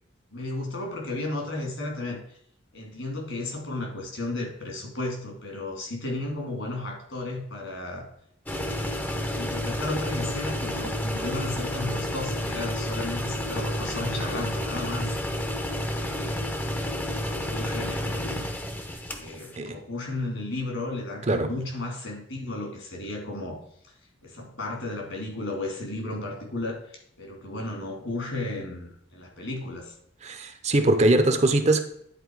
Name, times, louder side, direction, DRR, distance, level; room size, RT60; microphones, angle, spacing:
voice 1, 0.3-2.2 2.7-8.1 8.5-9.1 9.3-15.1 15.9-16.5 17.1-18.6 19.2-23.6 24.2-29.9, left 2 dB, 70° left, 3.0 m, -34 dB
sound 1, 8.5-19.6, left 1 dB, 10° left, 0.7 m, -30 dB
voice 2, 21.3-21.6 30.2-31.8, right 2 dB, 35° right, 0.8 m, -22 dB
10.0 x 4.5 x 4.8 m
head